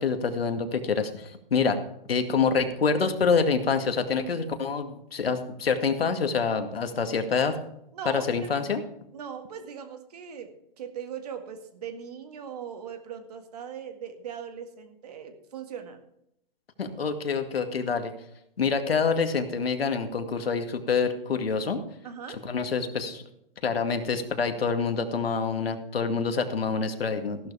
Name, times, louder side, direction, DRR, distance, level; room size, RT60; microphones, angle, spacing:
voice 1, 0.0-1.8 2.1-7.6 8.1-8.8 16.8-18.1 18.6-21.8 22.4-23.2 23.6-27.4, left 5 dB, 90° left, 6 dB, 2.0 m, -26 dB
voice 2, 7.9-8.6 9.1-16.0 22.0-22.4, right 7 dB, 45° right, 7 dB, 1.8 m, -39 dB
15.0 x 12.0 x 3.4 m, 0.78 s
hypercardioid pair, 165°, 29 cm